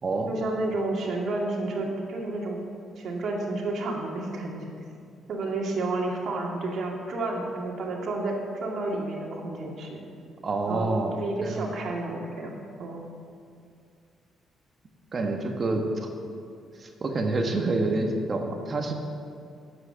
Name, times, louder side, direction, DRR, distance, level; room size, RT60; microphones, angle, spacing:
voice 1, 0.3-2.6 3.0-4.7 5.3-10.0 10.7-13.1, right 2 dB, 65° right, 0 dB, 2.2 m, -31 dB
voice 2, 10.4-11.8 15.1-16.1 16.8-18.9, right 2 dB, 40° right, 3 dB, 1.4 m, -27 dB
9.7 x 7.8 x 7.2 m, 2.4 s
cardioid pair, 90°, 0 cm